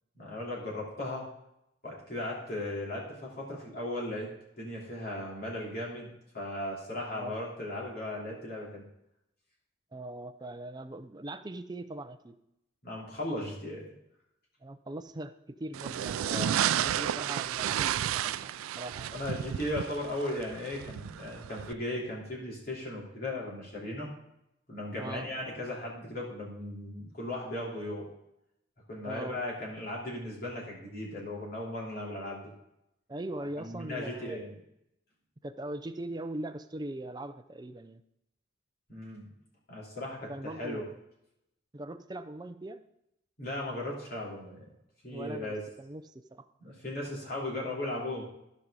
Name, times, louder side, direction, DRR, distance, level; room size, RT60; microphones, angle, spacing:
voice 1, 0.1-1.3 1.8-4.3 4.6-8.8 12.8-13.9 16.2-17.0 19.1-24.1 24.7-28.1 28.9-32.5 33.6-34.5 38.9-39.3 39.7-40.8 43.4-44.6 45.0-45.6 46.6-48.2, left 1 dB, 45° left, -4 dB, 3.2 m, -37 dB
voice 2, 9.9-12.4 14.6-19.2 25.0-25.3 29.0-29.4 33.1-34.5 35.4-38.0 40.3-40.9 41.7-42.8 45.1-46.5, right 1 dB, 20° right, 10 dB, 0.4 m, -41 dB
Paraglider Taking Off, 15.7-21.7, right 10 dB, 90° right, 0.3 m, -32 dB
13.5 x 5.3 x 4.9 m, 0.83 s
head